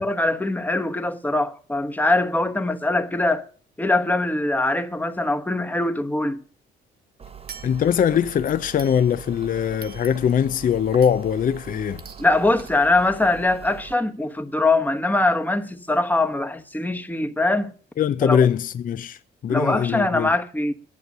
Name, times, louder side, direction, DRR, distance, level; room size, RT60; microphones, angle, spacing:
voice 1, 0.0-3.4 3.8-6.4 12.2-17.7 18.2-18.5 19.5-20.7, left 2 dB, 10° left, 1.1 m, -22 dB
sound 1, 7.2-13.9, right 7 dB, 30° right, 0.8 m, -42 dB
sound 2, 7.5-8.2 8.8-9.4 9.8-10.5 11.0-11.4 12.0-12.3 12.6-12.7, right 6 dB, 55° right, 1.3 m, -44 dB
voice 2, 7.6-12.0 18.0-20.3, left 8 dB, 45° left, 0.5 m, -22 dB
10.5 x 7.8 x 6.6 m
cardioid pair, 90°, 20 cm